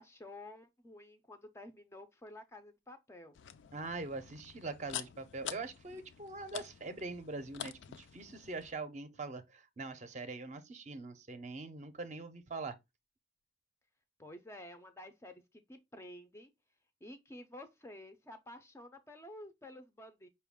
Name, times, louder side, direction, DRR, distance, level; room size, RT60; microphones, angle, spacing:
voice 1, 0.0-3.4 14.2-16.5 17.0-20.3, left 1 dB, 15° left, 0.4 m, -51 dB
sound 1, 3.3-8.7, left 9 dB, 80° left, 0.4 m, -47 dB
voice 2, 3.7-12.7, right 3 dB, 40° right, 0.5 m, -43 dB
5.3 x 2.2 x 3.4 m
head